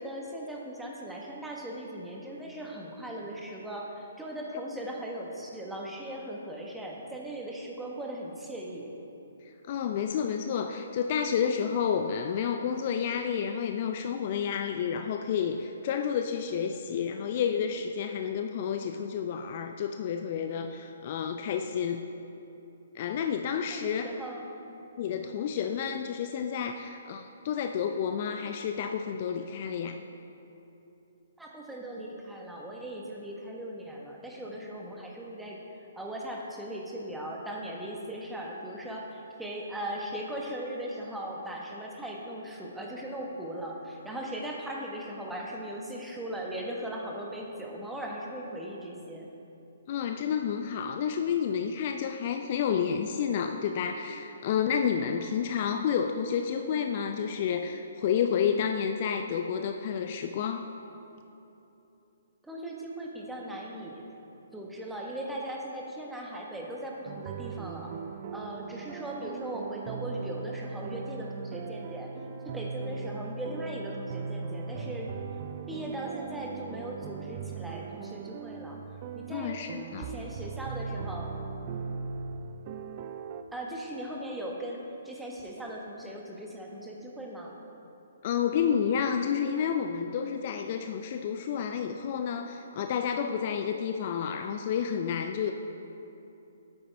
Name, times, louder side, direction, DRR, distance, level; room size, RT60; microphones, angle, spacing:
voice 1, 0.0-8.9 23.7-24.9 31.4-35.6 35.9-49.3 62.4-64.0 64.5-67.9 68.3-72.1 72.4-75.1 75.7-78.8 79.1-79.6 80.0-81.3 83.5-87.5, right 1 dB, 5° right, -2 dB, 1.2 m, -38 dB
voice 2, 9.7-22.0 22.9-24.1 25.0-30.0 49.9-60.7 79.3-80.1 88.2-95.5, left 7 dB, 40° left, 6 dB, 0.4 m, -30 dB
sound 1, 67.1-83.4, right 5 dB, 35° right, 0.4 m, -39 dB
12.5 x 8.8 x 3.4 m, 3.0 s
figure-of-eight pair, 130°, 0 cm